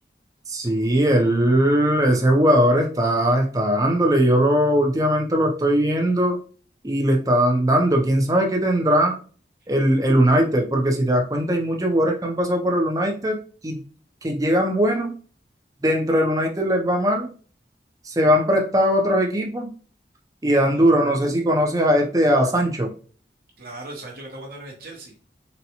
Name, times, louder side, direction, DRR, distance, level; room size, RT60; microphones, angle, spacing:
voice 1, 0.5-6.4 6.8-9.2 9.7-13.8 14.2-15.1 15.8-17.3 18.0-19.7 20.4-22.9, equal, 20° right, 1 dB, 0.6 m, -20 dB
voice 2, 20.7-21.0 23.6-25.3, right 2 dB, 55° right, -1 dB, 0.9 m, -39 dB
4.0 x 2.2 x 2.8 m, 0.40 s
head